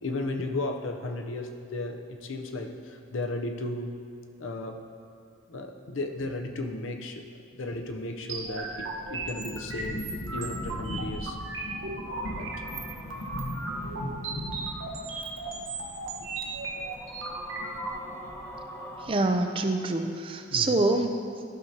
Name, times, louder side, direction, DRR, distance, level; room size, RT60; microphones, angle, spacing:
voice 1, 0.0-4.0 4.4-4.8 5.5-11.4 12.3-12.5 16.2-16.3 20.5-20.9, left 2 dB, 70° left, 4 dB, 0.6 m, -35 dB
sound 1, 8.3-17.9, right 3 dB, 75° right, 1.0 m, -36 dB
sound 2, 8.4-19.4, left 1 dB, 85° left, 1.3 m, -40 dB
sound 3, 12.0-19.1, right 1 dB, 15° left, 0.8 m, -46 dB
voice 2, 19.0-21.4, right 2 dB, 25° right, 5 dB, 0.4 m, -26 dB
12.5 x 5.9 x 2.8 m, 2.5 s
head